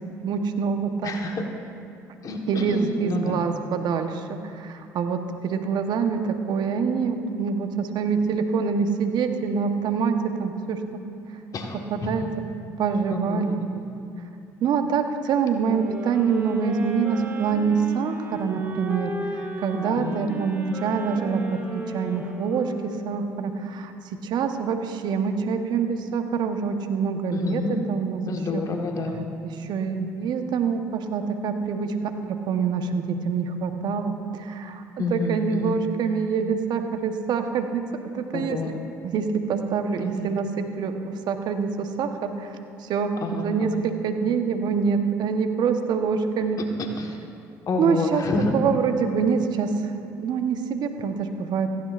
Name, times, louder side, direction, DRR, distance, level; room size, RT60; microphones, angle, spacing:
voice 1, 0.2-1.2 2.5-11.0 11.9-12.3 12.8-13.6 14.6-23.9 24.2-28.2 28.5-28.6 29.4-37.9 38.1-38.6 39.1-46.6 47.8-48.2 48.5-51.8, right 6 dB, 60° right, 6 dB, 1.1 m, -26 dB
voice 2, 1.0-1.5 2.2-3.5 11.5-11.8 12.0-12.3 13.3-13.8 20.0-20.2 27.3-27.8 28.2-29.2 35.0-35.8 38.3-38.8 40.0-40.4 43.2-43.8 46.6-47.2 47.7-48.5, left 3 dB, 45° left, 2 dB, 1.4 m, -29 dB
sound 1, 15.6-23.6, right 2 dB, 25° right, 2.6 m, -35 dB
16.5 x 15.0 x 2.5 m, 2.5 s
hypercardioid pair, 65°, 8 cm